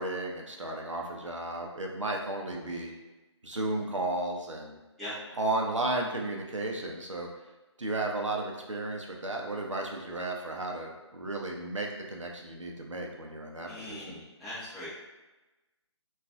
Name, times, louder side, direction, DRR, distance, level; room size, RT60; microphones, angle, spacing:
voice 1, 0.0-2.9 3.4-4.8 5.4-7.3 7.8-14.2, right 2 dB, 90° right, 1 dB, 0.5 m, -34 dB
voice 2, 2.5-2.9 5.0-5.1 13.6-14.9, left 1 dB, ahead, -16 dB, 0.7 m, -42 dB
2.4 x 2.2 x 2.4 m, 1.1 s
figure-of-eight pair, 145°, 15 cm